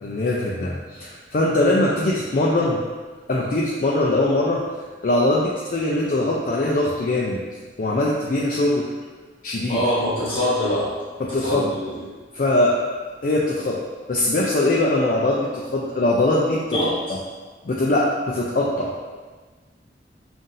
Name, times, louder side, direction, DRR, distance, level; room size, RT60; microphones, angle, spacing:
voice 1, 0.0-2.8 3.3-4.7 5.0-7.4 7.8-8.9 9.4-9.8 11.2-11.7 12.3-12.8 13.2-13.8 14.1-16.8 17.6-18.9, left 1 dB, 50° left, -4 dB, 0.4 m, -21 dB
voice 2, 9.7-10.9 11.4-12.0 16.7-17.0, left 1 dB, 30° left, -8 dB, 1.2 m, -23 dB
5.5 x 2.5 x 2.5 m, 1.4 s
head